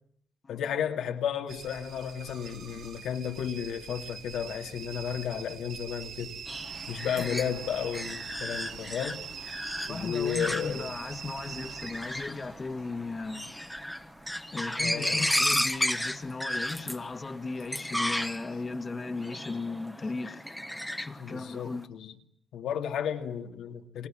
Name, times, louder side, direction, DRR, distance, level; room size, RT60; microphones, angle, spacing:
voice 1, 0.5-6.3 6.9-9.2 9.9-10.9 14.8-15.3 21.2-22.1 22.5-24.1, left 8 dB, 90° left, 2.4 m, -33 dB
sound 1, 1.5-16.4 16.6-17.2 17.8-18.2 18.7-18.8, right 7 dB, 65° right, 1.8 m, -44 dB
sound 2, 6.5-21.6, equal, ahead, 1.1 m, -34 dB
voice 2, 9.9-13.5 14.5-20.5 21.0-21.9, left 3 dB, 25° left, 1.5 m, -36 dB
29.5 x 25.0 x 7.4 m
wide cardioid pair, 160°, 0 cm